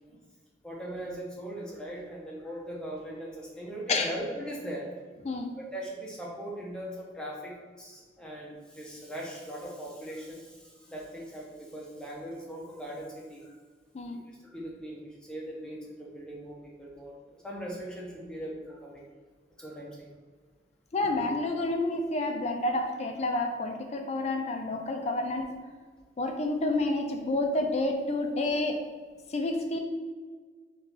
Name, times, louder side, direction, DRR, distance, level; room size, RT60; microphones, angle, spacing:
voice 1, 0.6-4.9 5.6-13.6 14.5-17.2 17.4-19.0 19.6-20.1, right 1 dB, 5° left, -4 dB, 0.7 m, -40 dB
voice 2, 20.9-25.5 26.2-28.8 29.3-29.8, left 2 dB, 35° left, 4 dB, 0.4 m, -29 dB
4.0 x 2.4 x 3.8 m, 1.5 s
head